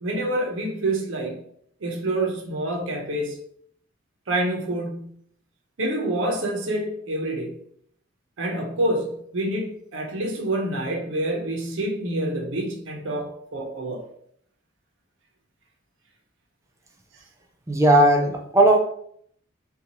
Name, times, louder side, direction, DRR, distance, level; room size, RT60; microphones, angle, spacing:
voice 1, 0.0-1.4 1.8-3.4 4.3-5.1 5.8-7.5 8.4-14.0, right 1 dB, 75° right, 2 dB, 0.6 m, -27 dB
voice 2, 17.7-18.8, right 1 dB, 15° right, 1 dB, 0.3 m, -17 dB
2.7 x 2.3 x 2.8 m, 0.66 s
head